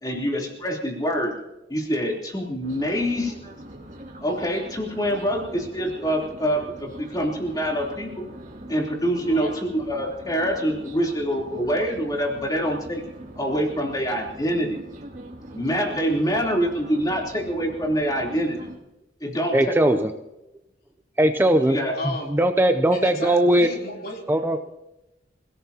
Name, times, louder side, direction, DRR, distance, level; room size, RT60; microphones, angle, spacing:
voice 1, 0.0-1.3 1.7-3.5 4.2-8.3 8.7-13.0 13.4-14.8 15.5-18.7 19.2-20.0 21.7-22.0, equal, 20° left, -1 dB, 3.4 m, -25 dB
sound 1, 2.6-18.8, right 1 dB, 45° right, 2.6 m, -42 dB
voice 2, 9.1-9.6 10.8-11.0 22.0-22.3 22.9-24.3, left 1 dB, 55° left, 0 dB, 3.3 m, -34 dB
voice 3, 19.5-20.1 21.2-21.8 22.0-23.7 24.3-24.7, right 1 dB, 10° right, 7 dB, 0.6 m, -19 dB
27.5 x 17.0 x 2.9 m, 0.93 s
head